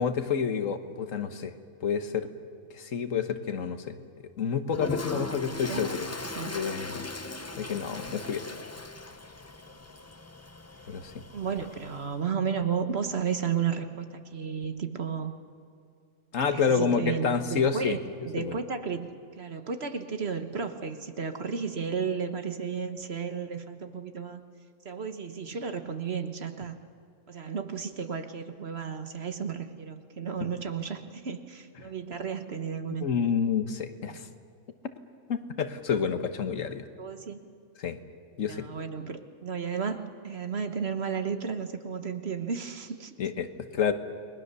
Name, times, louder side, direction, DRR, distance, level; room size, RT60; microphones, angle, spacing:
voice 1, 0.0-1.5 1.8-2.3 2.7-4.0 4.4-6.1 6.5-7.1 7.6-8.5 10.9-11.2 16.3-18.0 18.4-18.5 33.0-34.3 35.3-36.9 37.8-38.0 38.4-38.7 43.2-43.9, left 6 dB, 70° left, 9 dB, 1.6 m, -29 dB
Toilet flush, 4.7-12.2, left 2 dB, 15° left, 0.5 m, -39 dB
voice 2, 11.3-15.4 16.4-18.0 18.2-24.4 24.8-26.7 27.3-33.1 34.0-34.2 37.0-37.4 38.4-43.1, right 6 dB, 50° right, 8 dB, 1.5 m, -33 dB
29.5 x 21.0 x 6.9 m, 2.3 s
omnidirectional pair, 1.4 m